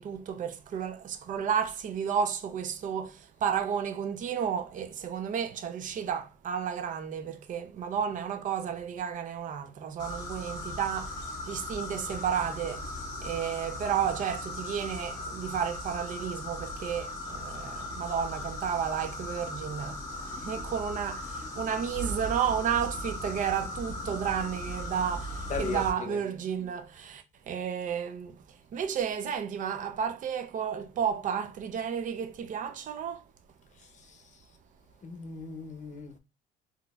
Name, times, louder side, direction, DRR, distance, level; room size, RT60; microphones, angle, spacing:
voice 1, 0.0-12.8 13.2-28.4 28.7-33.2, right 8 dB, 50° right, 0.6 m, -32 dB
sound 1, 10.0-25.9, left 1 dB, 25° left, 1.8 m, -38 dB
voice 2, 25.5-26.2 35.0-36.2, left 5 dB, 45° left, 0.8 m, -37 dB
3.8 x 2.9 x 2.3 m
cardioid pair, 110°, 17 cm